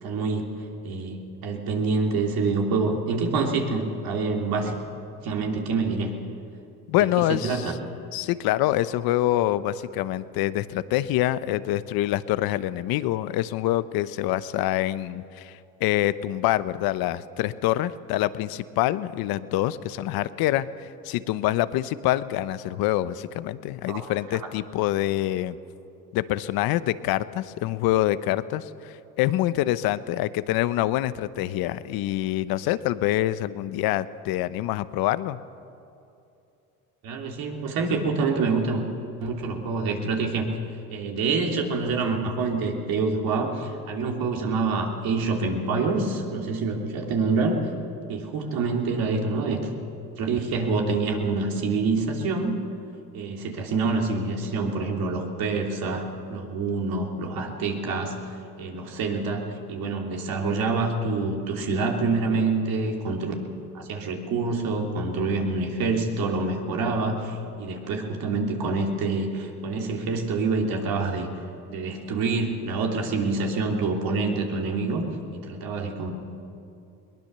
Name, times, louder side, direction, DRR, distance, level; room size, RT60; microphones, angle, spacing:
voice 1, 0.0-0.5 0.8-4.7 5.2-6.1 7.0-7.8 23.9-24.1 37.0-38.8 39.2-40.4 40.9-47.7 48.1-49.6 50.2-52.6 53.1-58.3 58.6-63.4 63.7-71.3 71.7-75.1 75.3-76.1, right 3 dB, 70° right, 1 dB, 3.2 m, -26 dB
voice 2, 6.9-7.7 8.1-25.6 26.1-35.4, left 14 dB, 75° left, 15 dB, 0.9 m, -26 dB
21.5 x 19.5 x 6.8 m, 2.7 s
supercardioid pair, 90°, 37 cm